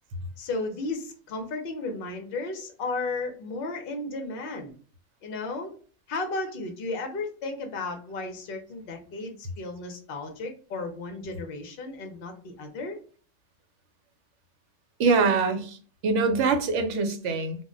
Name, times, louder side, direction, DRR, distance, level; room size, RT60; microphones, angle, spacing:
voice 1, 0.4-4.7 5.2-5.7 6.1-13.0, left 3 dB, 55° left, 4 dB, 0.7 m, -34 dB
voice 2, 15.0-15.8 16.0-17.6, right 4 dB, 75° right, 7 dB, 0.9 m, -23 dB
2.3 x 2.1 x 3.7 m, 0.41 s
omnidirectional pair, 1.3 m